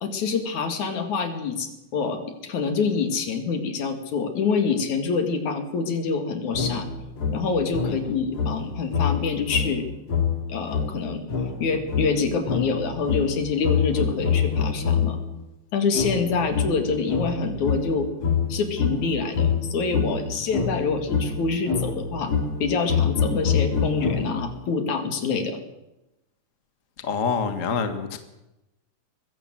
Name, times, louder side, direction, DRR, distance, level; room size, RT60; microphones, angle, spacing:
voice 1, 0.0-6.9 7.3-9.8 10.5-11.2 11.6-15.2 15.7-18.1 18.5-22.3 22.6-25.6, left 5 dB, 70° left, 7 dB, 3.7 m, -26 dB
sound 1, 6.5-15.3 15.9-24.6, left 6 dB, 50° left, 4.4 m, -26 dB
voice 2, 27.0-28.2, left 5 dB, 30° left, 8 dB, 1.8 m, -26 dB
21.5 x 16.0 x 7.7 m, 0.92 s
omnidirectional pair, 3.5 m